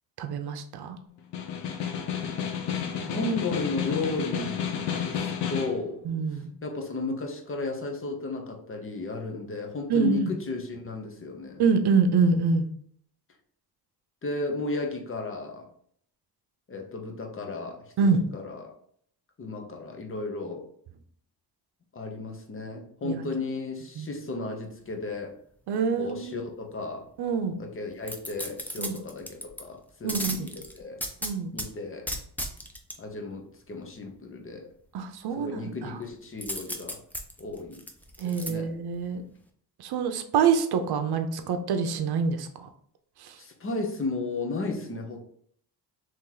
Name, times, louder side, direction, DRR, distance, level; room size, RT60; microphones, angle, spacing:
voice 1, 0.2-1.0 6.0-6.5 9.9-10.4 11.6-12.7 18.0-18.2 23.0-23.2 24.0-24.1 25.7-26.5 27.2-27.6 28.8-29.0 30.0-30.5 31.2-31.5 34.9-36.0 38.2-39.2 39.8-42.7 43.2-43.4, right 5 dB, 65° right, 7 dB, 0.7 m, -26 dB
Snare drum, 1.2-5.8, left 8 dB, 75° left, 0.7 m, -31 dB
voice 2, 3.0-6.0 6.6-11.6 14.2-15.7 16.7-18.8 19.4-20.6 21.9-25.4 26.0-27.1 27.6-31.0 31.5-32.1 33.0-34.7 35.4-37.0 37.4-37.8 38.2-38.7 43.4-45.2, left 3 dB, 30° left, 3 dB, 0.8 m, -34 dB
sound 1, 28.0-29.6 30.1-31.7 32.1-33.0 36.4-38.5 39.0-39.1, equal, 5° left, 0.5 m, -35 dB
3.1 x 2.9 x 3.8 m, 0.63 s
cardioid pair, 95°, 41 cm